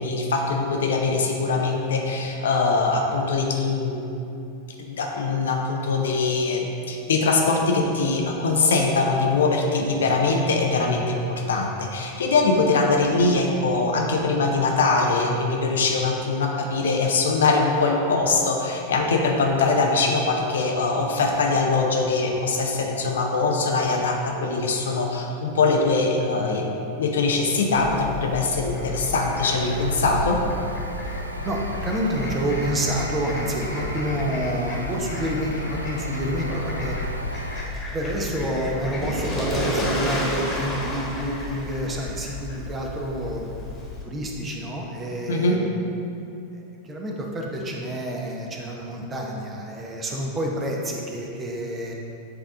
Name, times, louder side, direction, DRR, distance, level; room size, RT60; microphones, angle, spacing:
voice 1, 0.0-4.0 4.8-30.4 45.3-45.6, left 3 dB, 65° left, 1 dB, 0.7 m, -22 dB
Fowl, 27.7-44.0, left 1 dB, 20° left, 1.4 m, -32 dB
sound 1, 29.3-37.7, equal, 90° right, 0.3 m, -33 dB
voice 2, 31.4-37.0 37.9-43.6 44.0-45.7 46.5-51.9, right 1 dB, 20° right, -1 dB, 0.8 m, -28 dB
7.7 x 3.6 x 3.6 m, 2.7 s
figure-of-eight pair, 90°, 0 cm